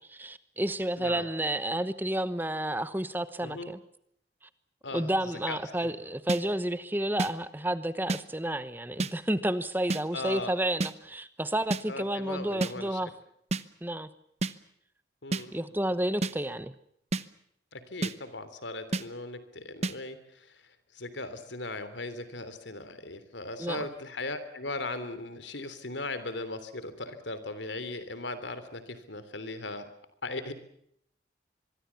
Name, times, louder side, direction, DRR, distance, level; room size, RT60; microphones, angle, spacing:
voice 1, 0.1-3.8 4.9-13.1 13.8-14.1 15.5-16.7 23.6-23.9, right 1 dB, 10° right, 1.0 m, -31 dB
voice 2, 1.0-1.3 3.4-3.7 4.8-5.9 10.1-10.5 11.9-13.1 15.2-15.5 17.7-20.6 20.9-29.9 30.2-30.5, left 2 dB, 85° left, 3.2 m, -38 dB
sound 1, 6.3-6.4 7.2-7.3 8.1-8.2 9.0-9.1 9.9-10.0 10.8-10.9 11.7-11.8 12.6-12.7 13.5-13.6 14.4-14.5 15.3-15.4 16.2-16.3 17.1-17.2 18.0-18.1 18.9-19.0 19.8-19.9, right 2 dB, 35° right, 1.0 m, -29 dB
25.5 x 22.5 x 7.2 m
head